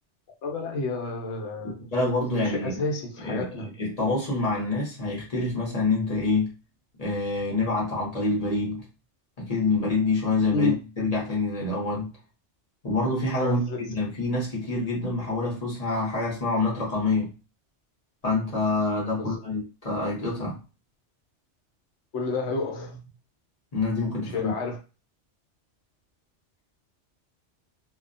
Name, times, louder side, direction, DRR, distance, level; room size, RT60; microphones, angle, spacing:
voice 1, 0.4-1.9 2.2-3.7 10.5-10.7 13.4-13.9 19.2-19.4 22.1-23.1 24.2-24.8, left 3 dB, 75° left, 1.0 m, -30 dB
voice 2, 1.6-2.8 3.2-6.5 7.0-8.8 9.4-12.1 12.8-13.6 13.9-17.3 18.2-20.6 23.7-24.5, left 3 dB, 35° left, 0.9 m, -26 dB
2.4 x 2.1 x 2.5 m
omnidirectional pair, 1.2 m